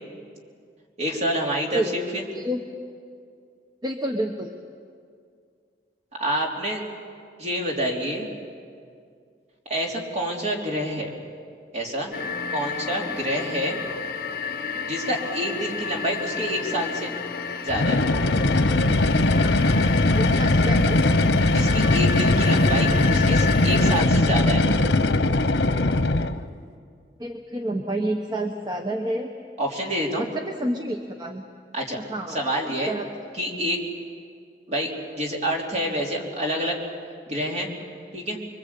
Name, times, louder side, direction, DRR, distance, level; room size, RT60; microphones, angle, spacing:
voice 1, 1.0-2.2 6.2-6.8 7.4-8.3 9.7-11.1 11.7-12.2 12.5-13.8 14.7-17.1 17.6-18.0 21.5-24.7 29.6-30.3 31.7-32.0 32.3-32.9 33.3-33.8 34.7-36.8 37.3-37.7 38.1-38.4, equal, 40° right, -1 dB, 3.6 m, -27 dB
voice 2, 3.8-4.5 20.2-21.0 27.2-29.3 30.2-31.4 31.9-32.4 32.6-33.1, right 1 dB, 25° right, 4 dB, 1.1 m, -29 dB
sound 1, 12.1-24.0, left 5 dB, 55° left, 1.4 m, -32 dB
sound 2, 17.7-26.5, left 2 dB, 90° left, 1.0 m, -20 dB
26.0 x 23.0 x 8.5 m, 2.3 s
head